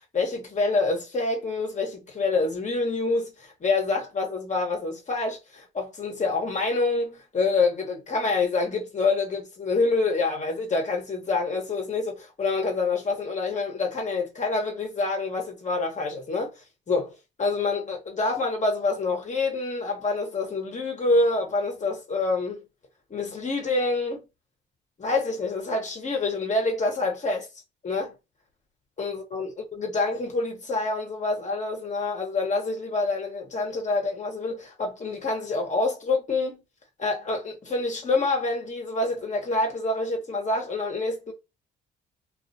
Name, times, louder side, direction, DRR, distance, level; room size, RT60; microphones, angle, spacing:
voice 1, 0.1-16.5 16.9-17.1 17.4-22.6 23.1-24.2 25.0-27.5 27.8-28.1 29.0-36.6 37.0-41.3, left 3 dB, 35° left, 1.0 m, -27 dB
2.5 x 2.3 x 2.6 m
cardioid pair, 90°, 20 cm